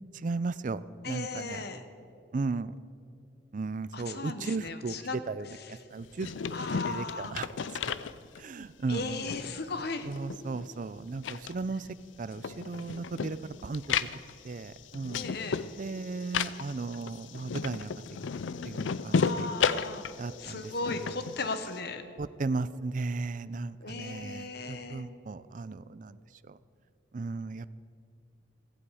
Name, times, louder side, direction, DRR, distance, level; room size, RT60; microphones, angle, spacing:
voice 1, 0.1-0.8 1.1-1.6 2.3-2.7 3.5-5.5 5.9-6.3 6.9-8.0 8.4-9.2 10.1-11.9 12.2-14.0 14.4-15.3 15.8-18.0 18.6-19.5 20.2-20.7 21.0-21.2 22.2-26.2 26.5-26.6 27.1-27.7, right 3 dB, 45° right, 16 dB, 0.4 m, -35 dB
voice 2, 1.0-1.8 3.9-5.2 5.6-5.8 6.5-7.4 8.9-10.1 15.1-15.6 19.1-20.1 20.4-22.0 23.8-25.1, left 3 dB, 55° left, 9 dB, 1.1 m, -37 dB
sound 1, 6.0-8.7 9.0-10.9 11.2-21.8, left 6 dB, 80° left, 0.5 m, -34 dB
16.0 x 15.5 x 4.9 m, 2.6 s
head